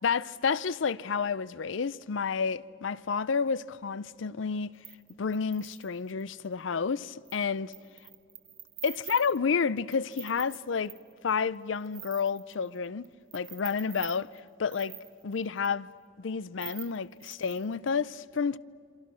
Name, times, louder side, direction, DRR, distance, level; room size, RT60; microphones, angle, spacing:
voice 1, 0.0-4.7 5.2-7.7 8.8-11.0 11.2-13.0 13.3-14.3 14.6-15.0 15.2-15.9 16.2-18.6, left 5 dB, 80° left, 0.5 m, -30 dB
sound 1, 4.8-6.2 7.3-7.4 7.7-11.3 11.5-13.1 13.3-15.7 16.6-17.9, right 10 dB, 30° right, 1.3 m, -46 dB
27.5 x 26.0 x 6.3 m
head